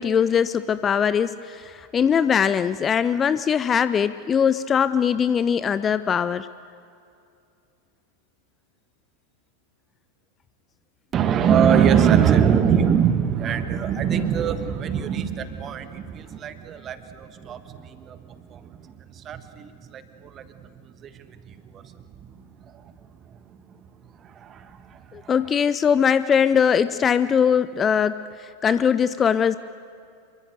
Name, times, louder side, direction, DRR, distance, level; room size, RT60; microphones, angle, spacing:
voice 1, 0.0-6.5 25.1-29.6, left 7 dB, 20° left, 15 dB, 0.6 m, -21 dB
voice 2, 11.1-22.9 23.3-23.4 24.2-25.3, right 8 dB, 30° right, 10 dB, 1.6 m, -24 dB
27.0 x 23.5 x 6.6 m, 2.4 s
figure-of-eight pair, 90°, 0 cm